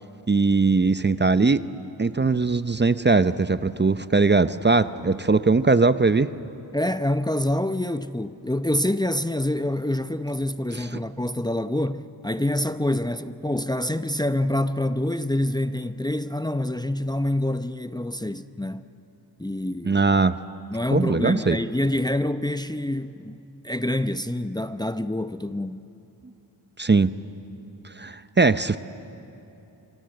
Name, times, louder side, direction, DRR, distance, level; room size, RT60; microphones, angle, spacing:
voice 1, 0.3-1.6 2.0-6.3 10.7-10.9 19.8-20.4 20.9-21.6 26.8-27.1 28.0-28.8, right 4 dB, 25° right, 0.7 m, -20 dB
voice 2, 6.7-18.8 19.4-20.0 20.7-25.8, left 1 dB, 10° left, 0.7 m, -26 dB
25.0 x 24.5 x 7.9 m
cardioid pair, 45°, 42 cm